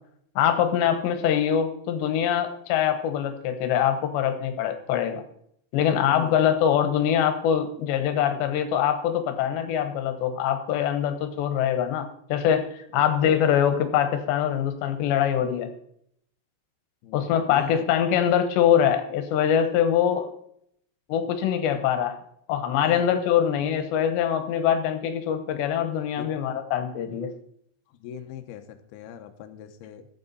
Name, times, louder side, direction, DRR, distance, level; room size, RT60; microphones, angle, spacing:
voice 1, 0.4-5.2 5.7-15.7 17.1-20.3 21.1-22.2 22.5-27.3, left 9 dB, 70° left, 8 dB, 2.9 m, -23 dB
voice 2, 6.0-6.4 17.0-17.8 22.8-23.1 26.2-26.3 28.0-30.1, left 10 dB, 85° left, 7 dB, 2.2 m, -40 dB
14.0 x 8.7 x 4.1 m, 0.69 s
omnidirectional pair, 5.8 m